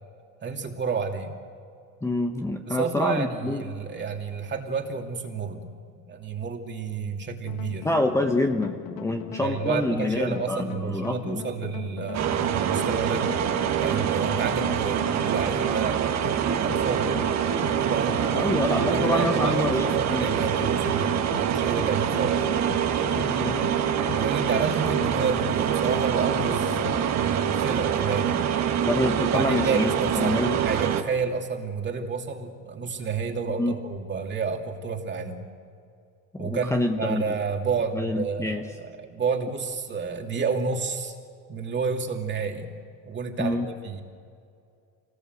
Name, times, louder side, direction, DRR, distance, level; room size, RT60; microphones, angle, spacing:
voice 1, 0.4-1.3 2.7-7.9 9.4-13.3 13.8-17.2 17.5-22.4 24.1-28.4 29.3-35.5 36.4-41.2 41.5-42.7 43.0-44.0, right 5 dB, 35° right, 3 dB, 2.7 m, -30 dB
voice 2, 2.0-3.6 7.8-11.4 18.3-20.3 23.2-23.7 28.8-29.9 30.2-30.6 33.6-33.7 36.3-37.2 37.9-38.7 43.4-43.7, left 2 dB, 10° left, 3 dB, 1.2 m, -27 dB
sound 1, 7.4-27.2, left 14 dB, 80° left, 0.9 m, -39 dB
sound 2, 12.1-31.0, right 9 dB, 55° right, 1.7 m, -25 dB
26.0 x 19.5 x 8.1 m, 2.4 s
cardioid pair, 125°, 33 cm